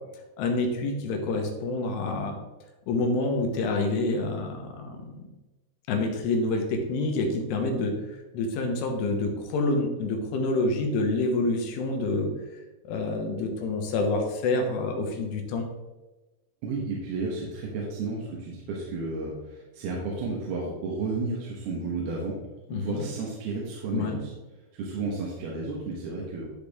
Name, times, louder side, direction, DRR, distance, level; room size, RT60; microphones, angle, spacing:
voice 1, 0.4-2.4 2.9-5.2 5.9-12.3 12.8-15.7 22.7-23.1 23.9-24.2, left 2 dB, 75° left, 3 dB, 3.1 m, -27 dB
voice 2, 16.6-22.4 22.7-24.3 24.7-26.5, right 3 dB, 70° right, -3 dB, 3.0 m, -32 dB
12.5 x 4.8 x 3.6 m, 1.1 s
omnidirectional pair, 5.1 m